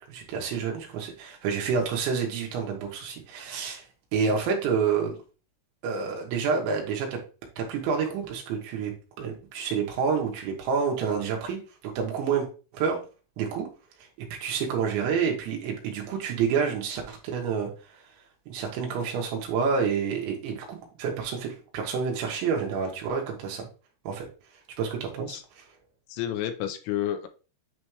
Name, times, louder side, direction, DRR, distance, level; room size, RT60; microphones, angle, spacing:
voice 1, 0.1-3.9 4.1-5.1 5.8-7.2 7.6-8.9 9.2-12.5 12.7-13.0 13.4-13.7 14.2-18.0 18.5-23.7 24.1-24.3 24.8-25.7, right 6 dB, 80° right, 0 dB, 3.5 m, -28 dB
voice 2, 26.1-27.3, left 11 dB, 80° left, 8 dB, 3.0 m, -31 dB
9.7 x 3.4 x 3.1 m, 0.34 s
omnidirectional pair, 5.4 m